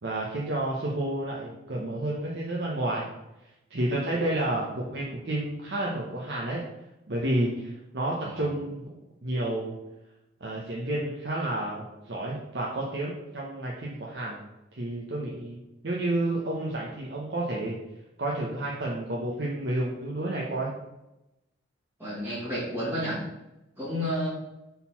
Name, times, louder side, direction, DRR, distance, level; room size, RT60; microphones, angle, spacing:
voice 1, 0.0-3.1 3.7-6.6 7.1-8.9 9.2-9.8 10.4-14.4 14.7-15.6 15.8-17.8 18.2-20.7, right 1 dB, 60° right, -4 dB, 0.9 m, -30 dB
voice 2, 22.0-23.2 23.8-24.3, equal, 10° right, -10 dB, 2.1 m, -31 dB
4.3 x 4.0 x 5.6 m, 0.92 s
head